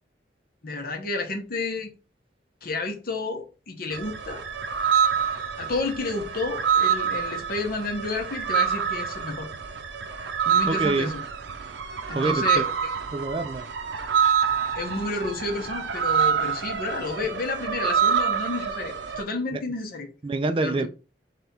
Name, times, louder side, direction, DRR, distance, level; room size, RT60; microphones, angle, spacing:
voice 1, 0.6-1.9 2.6-4.4 5.6-9.5 10.4-11.2 12.1-12.9 14.7-20.1 20.5-20.9, left 3 dB, 55° left, 1.0 m, -31 dB
sound 1, 3.9-19.2, right 7 dB, 85° right, 0.6 m, -26 dB
voice 2, 10.7-11.1 12.1-12.7 13.1-13.7 19.5-19.6 20.2-20.9, right 3 dB, 30° right, 0.4 m, -26 dB
3.4 x 3.4 x 4.3 m
head